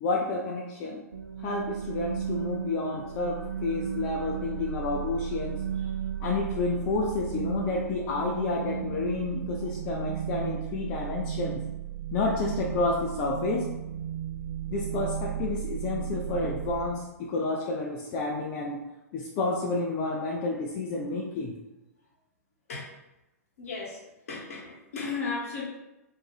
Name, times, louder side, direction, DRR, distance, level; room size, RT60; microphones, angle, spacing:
voice 1, 0.0-1.0 1.4-5.6 6.2-11.6 12.1-13.7 14.7-18.8 19.1-21.5, left 3 dB, 35° left, -2 dB, 0.3 m, -30 dB
sound 1, 1.1-16.9, right 9 dB, 70° right, 0.4 m, -35 dB
voice 2, 23.6-24.0 24.3-25.6, left 4 dB, 60° left, -4 dB, 1.0 m, -34 dB
2.6 x 2.2 x 3.1 m, 0.96 s
figure-of-eight pair, 105°, 8 cm